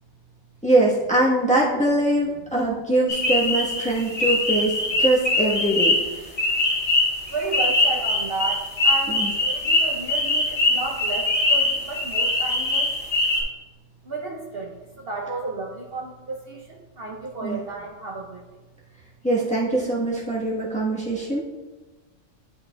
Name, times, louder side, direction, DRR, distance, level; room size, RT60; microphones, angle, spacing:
voice 1, 0.6-5.9 9.1-9.3 17.4-17.6 19.2-21.4, right 1 dB, 5° left, -6 dB, 1.0 m, -22 dB
sound 1, 3.1-13.4, left 2 dB, 50° left, 1.6 m, -23 dB
voice 2, 7.3-12.9 14.0-18.6 20.5-20.6 21.2-21.3, right 3 dB, 55° right, -1 dB, 0.8 m, -33 dB
10.0 x 4.1 x 2.2 m, 1.2 s
omnidirectional pair, 1.3 m